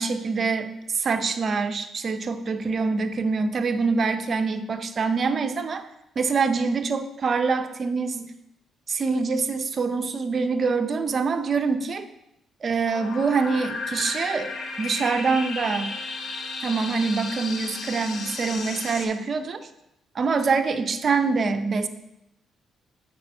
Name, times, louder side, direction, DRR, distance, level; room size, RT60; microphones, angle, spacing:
voice 1, 0.0-5.8 6.2-8.3 8.9-12.1 12.6-15.9 16.6-19.7 20.1-21.9, right 4 dB, 45° right, 8 dB, 0.6 m, -25 dB
sound 1, 12.8-19.1, left 3 dB, 60° left, 0.9 m, -34 dB
7.1 x 4.8 x 4.4 m, 0.86 s
cardioid pair, 90°, 0 cm